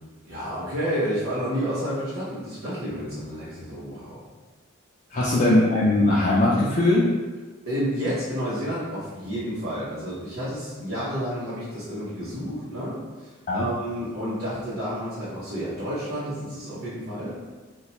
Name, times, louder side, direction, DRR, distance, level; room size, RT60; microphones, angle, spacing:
voice 1, 0.2-4.2 5.1-5.3 7.7-17.4, equal, 90° right, -12 dB, 1.1 m, -30 dB
voice 2, 5.1-7.1 13.5-13.6, left 1 dB, 40° left, -7 dB, 0.4 m, -20 dB
2.8 x 2.2 x 4.1 m, 1.3 s
head